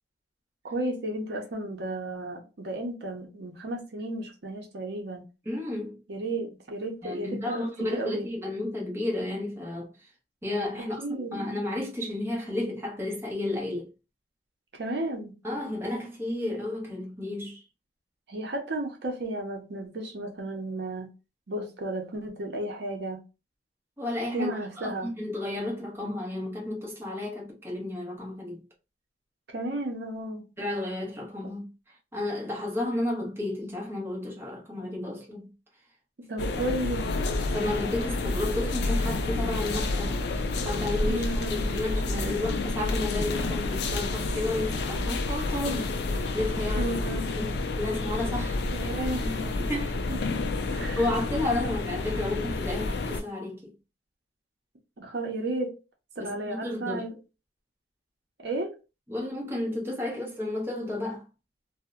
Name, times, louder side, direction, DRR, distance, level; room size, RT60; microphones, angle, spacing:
voice 1, 0.6-5.2 6.1-8.3 10.8-11.4 14.7-15.4 18.3-21.1 21.5-23.2 24.3-25.1 29.5-30.5 36.3-37.1 41.0-41.7 46.8-47.3 48.7-49.6 50.1-50.2 50.7-51.1 51.6-51.7 55.0-55.8 56.2-57.2 58.4-58.7, right 1 dB, 65° right, 0.6 m, -33 dB
voice 2, 5.5-6.0 7.0-10.1 10.4-13.9 15.4-17.6 24.0-28.6 30.6-31.7 32.1-35.5 37.5-41.3 41.6-45.9 46.3-46.9 47.3-48.9 49.2-50.0 51.0-53.7 56.2-57.1 59.1-61.2, left 2 dB, 15° right, 0.7 m, -32 dB
sound 1, 36.4-53.2, left 2 dB, 60° left, 0.3 m, -29 dB
2.6 x 2.0 x 2.3 m
head